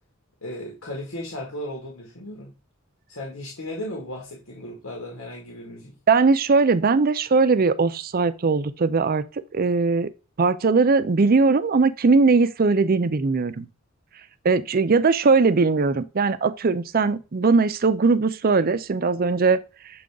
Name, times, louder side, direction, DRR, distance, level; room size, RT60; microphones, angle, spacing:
voice 1, 0.4-2.5 3.1-5.9, left 1 dB, 85° left, 1.9 m, -35 dB
voice 2, 6.1-9.2 9.5-10.1 10.4-13.7 14.4-19.6, right 4 dB, 45° right, 0.5 m, -20 dB
7.6 x 3.9 x 3.5 m
head